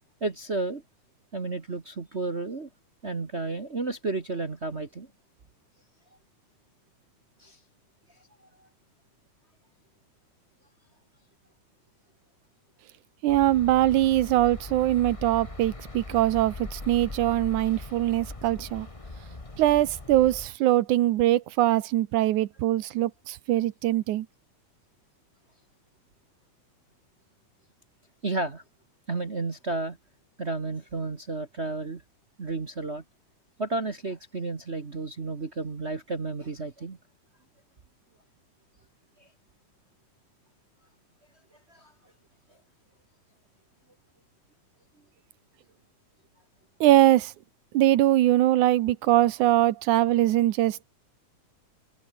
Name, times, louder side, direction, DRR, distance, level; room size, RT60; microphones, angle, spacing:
voice 1, 0.2-0.8 1.3-2.7 3.0-5.1 7.4-7.6 8.6-8.7 28.2-28.6 29.1-30.0 30.4-32.0 32.4-33.0 33.6-37.0 41.7-41.9, right 3 dB, 35° right, 1.0 m, -32 dB
voice 2, 13.2-18.9 19.6-24.3 46.8-47.3 47.7-50.8, right 14 dB, 80° right, 2.4 m, -22 dB
sound 1, 13.3-20.5, left 2 dB, 15° left, 1.1 m, -40 dB
omnidirectional pair, 3.5 m